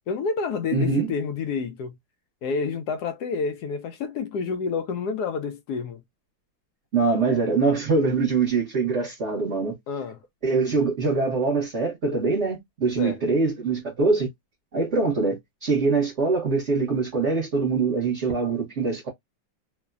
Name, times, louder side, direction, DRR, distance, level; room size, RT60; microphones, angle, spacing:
voice 1, 0.1-2.0 2.4-6.0 9.9-10.2 13.0-13.2, left 5 dB, 75° left, 1.0 m, -29 dB
voice 2, 0.7-1.1 6.9-9.8 10.4-14.3 14.7-19.1, right 4 dB, 45° right, 1.1 m, -23 dB
3.0 x 2.1 x 2.4 m
omnidirectional pair, 2.0 m